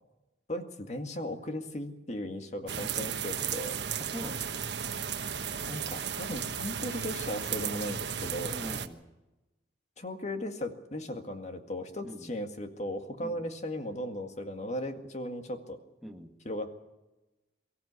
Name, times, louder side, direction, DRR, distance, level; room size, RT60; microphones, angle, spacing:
voice 1, 0.5-3.8 5.6-8.6 10.0-15.8 16.4-16.7, left 1 dB, 40° left, 6 dB, 2.0 m, -37 dB
sound 1, 2.7-8.9, right 7 dB, 70° right, 1.3 m, -35 dB
voice 2, 4.1-4.6 8.5-9.0 12.0-12.3 13.2-13.4 16.0-16.3, equal, ahead, 2 dB, 1.6 m, -42 dB
23.5 x 14.5 x 8.3 m, 1.0 s
head